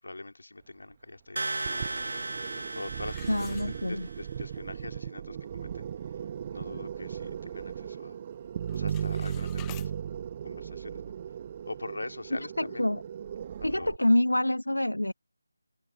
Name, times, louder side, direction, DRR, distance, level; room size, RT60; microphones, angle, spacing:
voice 1, 0.0-1.9 2.5-5.9 6.5-8.2 8.7-9.9 10.4-11.1 11.6-12.9 13.6-14.1, left 2 dB, 60° left, 2.7 m, -43 dB
sound 1, 1.4-4.3, right 2 dB, 55° right, 0.7 m, -36 dB
sound 2, 1.6-14.0, right 8 dB, 25° right, 1.3 m, -37 dB
sound 3, 3.0-4.3 4.8-4.9 5.4-5.5 5.9-6.2 6.6-7.8 8.0-8.4 8.6-9.9, left 40 dB or more, 10° left, 1.1 m, -51 dB
voice 2, 3.3-4.1 12.6-13.0 13.6-15.1, left 1 dB, 75° left, 1.3 m, -26 dB
figure-of-eight pair, 160°, 0 cm